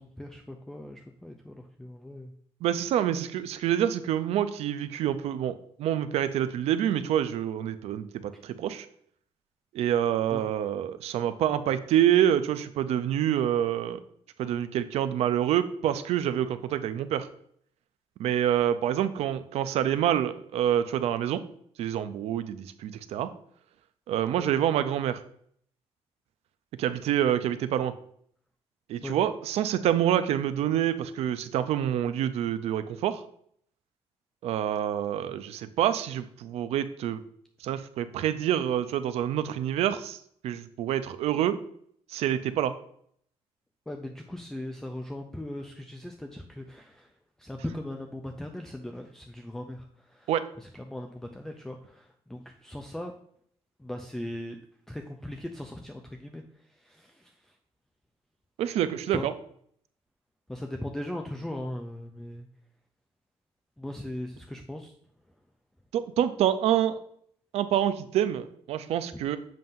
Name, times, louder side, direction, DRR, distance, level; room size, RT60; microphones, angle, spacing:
voice 1, 0.0-2.3 10.3-10.4 24.4-24.5 29.0-29.2 43.9-50.3 50.6-53.1 53.8-54.6 54.9-57.6 59.1-59.3 60.5-62.5 63.8-64.9, left 1 dB, 5° left, 3 dB, 0.3 m, -39 dB
voice 2, 2.6-8.9 9.7-14.0 14.4-17.3 18.2-21.4 21.8-23.3 24.1-25.2 26.8-27.9 28.9-33.2 34.4-37.2 37.6-41.6 42.1-42.7 50.3-50.4 58.6-59.3 65.9-67.0 67.5-69.4, right 10 dB, 75° right, 12 dB, 0.5 m, -27 dB
7.5 x 2.6 x 5.4 m, 0.65 s
cardioid pair, 165°, 11 cm